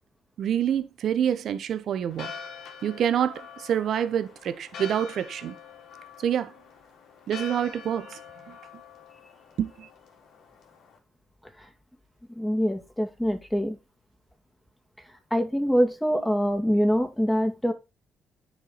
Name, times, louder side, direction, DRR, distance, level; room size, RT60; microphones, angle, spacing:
voice 1, 0.4-2.3 2.8-5.5 6.2-6.5 7.3-8.2 8.5-8.6 9.6-9.9, right 9 dB, 65° right, 1.1 m, -27 dB
Church bell, 2.1-11.0, left 6 dB, 70° left, 3.4 m, -45 dB
voice 2, 12.4-13.8 15.3-17.7, equal, 5° left, 2.6 m, -24 dB
9.9 x 7.0 x 4.3 m
hypercardioid pair, 50°, 0 cm